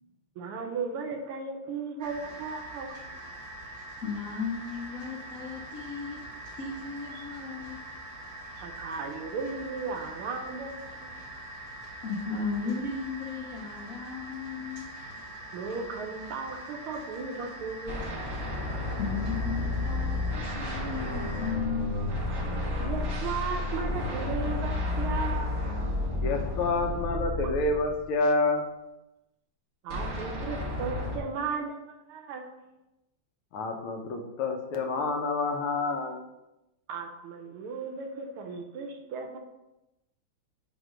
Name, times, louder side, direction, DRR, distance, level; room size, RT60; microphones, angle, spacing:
voice 1, 0.4-3.0 7.1-7.3 8.6-11.1 15.5-18.1 22.8-25.5 29.8-32.7 36.9-39.4, right 4 dB, 80° right, 3 dB, 1.6 m, -36 dB
sound 1, 2.0-21.5, right 1 dB, 25° right, 1.6 m, -43 dB
voice 2, 4.0-6.2 6.6-7.8 12.0-14.9 19.0-21.9, left 5 dB, 60° left, -2 dB, 0.9 m, -35 dB
sound 2, 17.9-28.1 29.9-31.2, left 2 dB, 45° right, 1.9 m, -31 dB
voice 3, 26.2-28.7 33.5-36.2, left 3 dB, 80° left, 4 dB, 1.7 m, -28 dB
7.6 x 3.0 x 5.0 m, 0.95 s
omnidirectional pair, 2.4 m